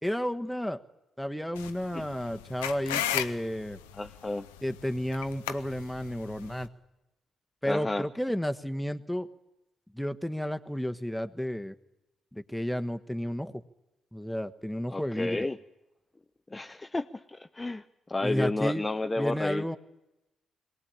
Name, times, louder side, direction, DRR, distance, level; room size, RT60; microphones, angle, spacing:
voice 1, 0.0-0.8 1.2-3.8 4.6-6.7 7.6-9.3 9.9-11.7 12.3-13.6 14.1-15.5 18.2-18.9 19.2-19.8, equal, 5° left, 8 dB, 1.4 m, -32 dB
sound 1, 1.6-6.7, left 11 dB, 85° left, 0.7 m, -36 dB
voice 2, 3.9-4.5 7.6-8.0 14.9-15.6 16.5-19.8, left 2 dB, 25° left, 8 dB, 0.7 m, -32 dB
22.5 x 18.0 x 8.8 m, 0.95 s
hypercardioid pair, 40°, 0 cm